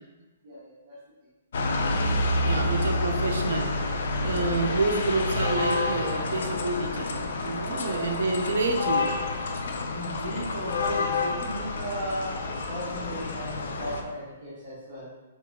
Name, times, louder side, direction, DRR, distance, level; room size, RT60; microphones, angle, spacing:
voice 1, 0.4-1.0 2.4-2.9 4.2-4.6 7.7-8.1 9.9-15.1, right 1 dB, 40° right, -10 dB, 0.9 m, -36 dB
sound 1, 1.5-14.0, left 2 dB, 65° left, 0.4 m, -29 dB
voice 2, 2.4-9.1, right 3 dB, 75° right, 3 dB, 0.5 m, -28 dB
3.9 x 2.9 x 2.3 m, 1.1 s
hypercardioid pair, 165°, 0 cm